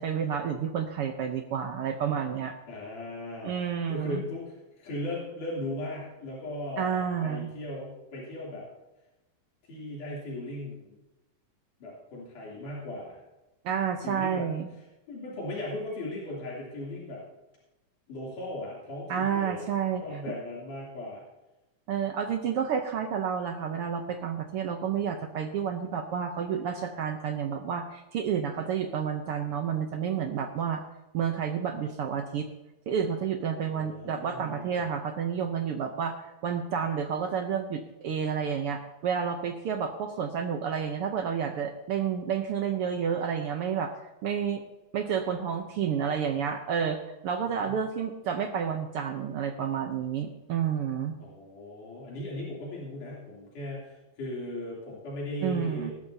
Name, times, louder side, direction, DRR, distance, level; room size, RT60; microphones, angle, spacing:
voice 1, 0.0-2.5 3.4-4.2 6.8-7.5 13.6-14.7 19.1-20.0 20.3-20.4 21.9-30.8 31.1-32.5 32.9-36.2 36.4-43.9 44.2-44.6 44.9-47.0 47.2-51.2 55.4-55.9, right 7 dB, 75° right, 5 dB, 1.3 m, -30 dB
voice 2, 2.7-3.5 3.9-8.7 9.6-10.9 11.8-13.2 14.0-14.5 14.8-17.2 18.1-19.6 20.0-21.2 33.6-34.9 47.6-47.8 51.2-55.9, left 1 dB, 75° left, -5 dB, 4.6 m, -38 dB
18.5 x 13.0 x 2.8 m, 1.0 s
omnidirectional pair, 3.7 m